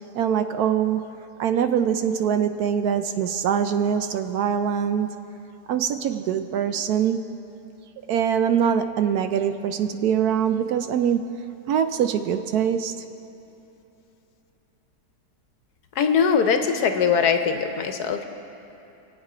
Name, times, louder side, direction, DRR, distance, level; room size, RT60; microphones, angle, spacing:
voice 1, 0.1-1.0 1.4-5.1 5.7-7.2 8.1-11.3 11.7-12.9, right 8 dB, 70° right, 9 dB, 1.0 m, -23 dB
voice 2, 16.0-18.2, left 6 dB, 70° left, 7 dB, 1.3 m, -21 dB
24.5 x 8.2 x 4.9 m, 3.0 s
omnidirectional pair, 1.8 m